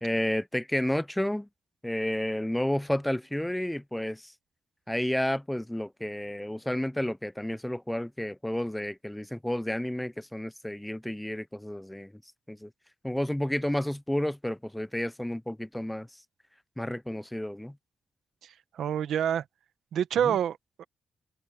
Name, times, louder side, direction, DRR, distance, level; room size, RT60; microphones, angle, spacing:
voice 1, 0.0-1.5 1.8-4.3 4.9-12.1 12.5-12.7 13.0-16.1 16.8-17.7 20.3-20.4, left 1 dB, 5° left, 0.4 m, -31 dB
voice 2, 18.4-19.4 19.9-20.8, right 9 dB, 85° right, 1.0 m, -28 dB
open air
cardioid pair, 125°, 0 cm